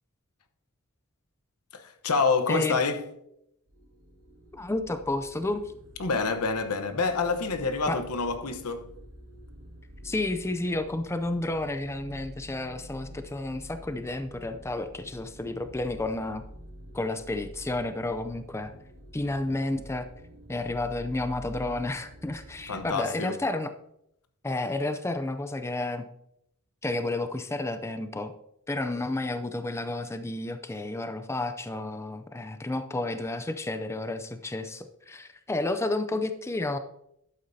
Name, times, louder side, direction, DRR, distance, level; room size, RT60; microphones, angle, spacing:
voice 1, 1.7-3.1 6.0-8.9 22.7-23.4, left 4 dB, 85° left, 1.0 m, -27 dB
voice 2, 2.5-2.8 4.5-5.7 7.9-8.0 10.0-16.4 16.9-18.7 19.1-20.1 20.5-23.7 24.4-26.1 26.8-28.3 28.7-36.8, left 2 dB, 10° left, 0.4 m, -31 dB
sound 1, 3.7-22.9, equal, 80° right, 2.0 m, -48 dB
11.5 x 8.3 x 2.7 m
head